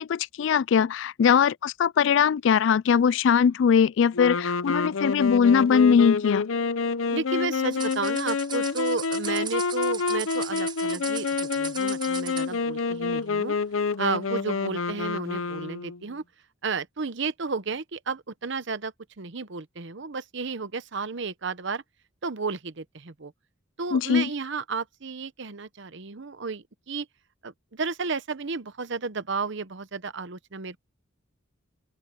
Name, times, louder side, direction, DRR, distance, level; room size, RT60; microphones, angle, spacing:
voice 1, 0.0-6.4 23.9-24.3, left 7 dB, 65° left, 0.3 m, -21 dB
sound 1, 4.1-16.0, left 4 dB, 85° left, 0.8 m, -28 dB
voice 2, 7.1-13.5 14.0-16.2 16.6-21.8 22.2-23.3 23.8-27.1 27.4-30.8, right 4 dB, 60° right, 0.9 m, -32 dB
sound 2, 7.7-12.5, right 7 dB, 25° right, 4.9 m, -38 dB
open air
head